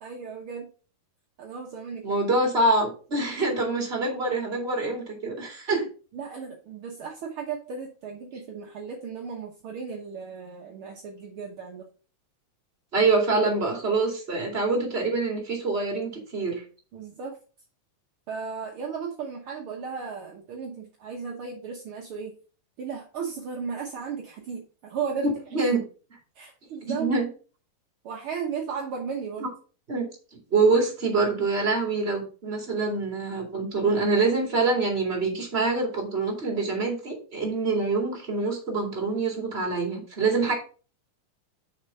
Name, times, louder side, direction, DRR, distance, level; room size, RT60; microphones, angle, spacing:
voice 1, 0.0-0.7 1.4-2.2 6.1-11.9 16.9-17.4 18.3-22.3 22.8-25.3 25.6-25.7 26.3-27.1 28.0-29.5, right 6 dB, 65° right, 1 dB, 1.3 m, -35 dB
voice 2, 2.0-5.9 12.9-16.6 25.5-25.8 26.8-27.3 29.4-29.5 29.9-30.1 30.5-40.5, right 3 dB, 20° right, 1 dB, 2.3 m, -25 dB
6.6 x 5.1 x 5.6 m, 0.38 s
omnidirectional pair, 3.8 m